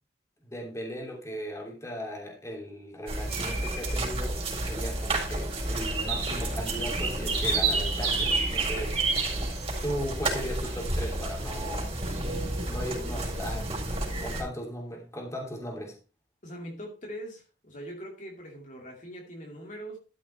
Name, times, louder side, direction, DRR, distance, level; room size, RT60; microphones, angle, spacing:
voice 1, 0.4-8.9 9.8-11.9 12.7-13.9 14.2-15.9, equal, 15° left, 3.0 m, -37 dB
sound 1, 3.1-14.4, right 2 dB, 30° right, 4.6 m, -30 dB
voice 2, 16.4-20.0, equal, 45° left, 2.6 m, -42 dB
13.0 x 6.3 x 4.5 m
head